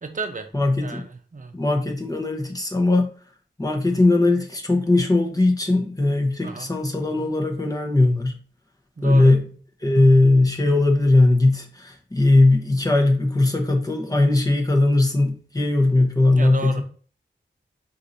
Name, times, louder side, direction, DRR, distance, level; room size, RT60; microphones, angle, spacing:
voice 1, 0.0-0.5 0.8-1.5 6.4-6.7 9.0-9.3 16.3-16.8, right 3 dB, 40° right, 6 dB, 0.7 m, -33 dB
voice 2, 0.5-1.0 1.5-3.1 3.6-8.4 9.0-9.5 9.8-16.8, left 2 dB, 20° left, 1 dB, 0.9 m, -19 dB
4.7 x 2.6 x 4.1 m, 0.43 s
wide cardioid pair, 95°, 20 cm